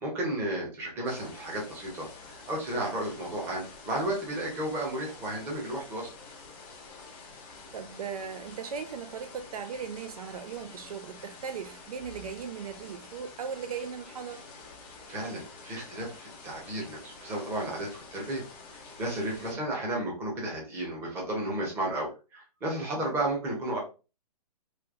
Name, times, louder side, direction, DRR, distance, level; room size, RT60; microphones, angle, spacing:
voice 1, 0.0-6.1 15.1-18.4 18.7-23.8, right 1 dB, 10° right, 0.8 m, -33 dB
sound 1, 1.0-19.5, left 4 dB, 15° left, 0.4 m, -48 dB
voice 2, 7.7-14.4 19.4-19.6 23.0-23.1, right 6 dB, 65° right, 0.4 m, -38 dB
3.2 x 2.8 x 2.5 m
hypercardioid pair, 165°, 21 cm